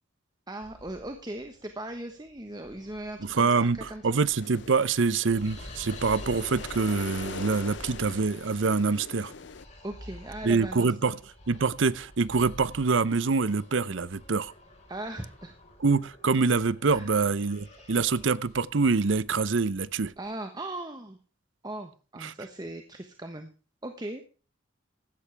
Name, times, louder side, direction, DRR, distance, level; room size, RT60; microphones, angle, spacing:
voice 1, 0.5-4.2 9.8-11.1 14.9-15.5 16.9-17.1 20.2-21.2 21.6-23.5 23.8-24.2, right 1 dB, 20° right, 1.1 m, -38 dB
sound 1, 0.6-20.3, left 1 dB, 35° left, 4.6 m, -49 dB
voice 2, 3.2-9.3 10.4-11.1 11.5-14.5 15.8-20.1 22.2-22.3, right 4 dB, 75° right, 0.7 m, -25 dB
sound 2, 4.4-9.7, left 5 dB, 65° left, 0.7 m, -42 dB
15.5 x 12.0 x 3.4 m
head